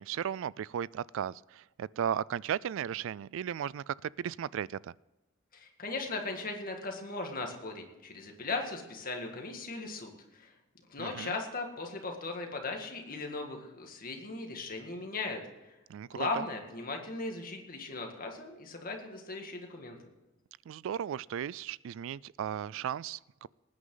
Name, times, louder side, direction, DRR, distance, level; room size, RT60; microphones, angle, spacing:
voice 1, 0.0-4.9 11.0-11.3 15.9-16.4 20.7-23.5, right 9 dB, 65° right, 0.3 m, -36 dB
voice 2, 5.5-10.5 10.9-15.7 16.1-20.0, left 3 dB, 45° left, 2.0 m, -38 dB
19.5 x 9.7 x 3.9 m
head